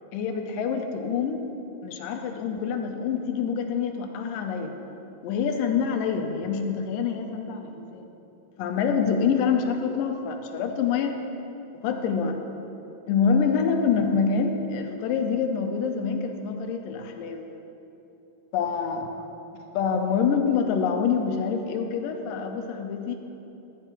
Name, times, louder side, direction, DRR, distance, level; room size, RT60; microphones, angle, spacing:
voice 1, 0.1-1.4 1.8-4.7 5.2-8.1 8.6-11.2 11.8-12.4 13.1-17.5 18.5-19.1 19.7-23.2, left 6 dB, 85° left, 5 dB, 2.3 m, -26 dB
14.0 x 11.0 x 3.0 m, 3.0 s
omnidirectional pair, 3.9 m